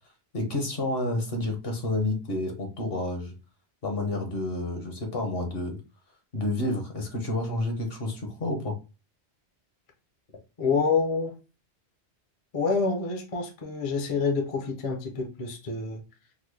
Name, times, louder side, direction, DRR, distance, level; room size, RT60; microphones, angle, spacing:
voice 1, 0.3-3.3 3.8-5.8 6.3-8.8, left 2 dB, 60° left, 1.2 m, -29 dB
voice 2, 10.6-11.3 12.5-16.0, left 4 dB, 40° left, 0.6 m, -27 dB
3.9 x 2.0 x 3.2 m
omnidirectional pair, 1.1 m